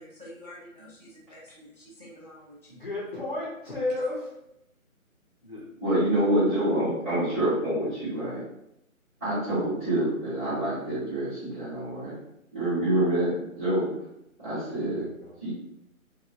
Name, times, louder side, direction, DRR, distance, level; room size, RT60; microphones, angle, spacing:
voice 1, 0.0-2.7, equal, 30° right, -6 dB, 0.4 m, -48 dB
voice 2, 2.7-4.3 5.4-5.7 14.9-15.3, left 2 dB, 40° left, -5 dB, 0.4 m, -33 dB
voice 3, 5.8-8.4 9.2-12.1 12.5-13.3 13.6-13.9 14.4-15.0 15.4-15.5, right 1 dB, 10° right, -18 dB, 0.8 m, -26 dB
2.9 x 2.0 x 2.3 m, 0.81 s
figure-of-eight pair, 155°, 42 cm